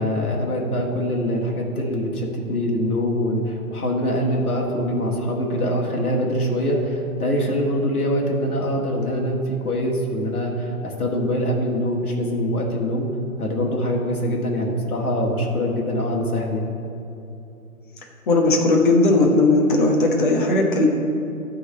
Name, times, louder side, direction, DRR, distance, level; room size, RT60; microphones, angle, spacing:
voice 1, 0.0-13.1 13.4-16.6, equal, 70° left, 0 dB, 1.7 m, -24 dB
voice 2, 18.3-20.9, left 2 dB, 35° left, 1 dB, 1.2 m, -17 dB
11.5 x 3.9 x 7.4 m, 2.8 s
figure-of-eight pair, 140°, 45 cm